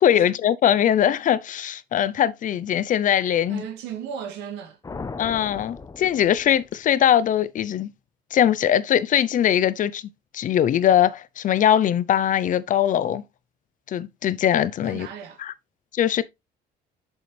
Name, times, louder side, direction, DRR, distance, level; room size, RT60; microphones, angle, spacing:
voice 1, 0.0-3.6 5.2-7.9 8.3-13.2 13.9-15.1 15.4-15.5 15.9-16.2, left 10 dB, 50° left, 0.6 m, -21 dB
voice 2, 3.5-4.8 14.8-15.4, right 8 dB, 90° right, 2.2 m, -36 dB
sound 1, 4.8-7.1, left 4 dB, 20° left, 0.8 m, -38 dB
7.0 x 6.6 x 3.3 m
cardioid pair, 110°, 17 cm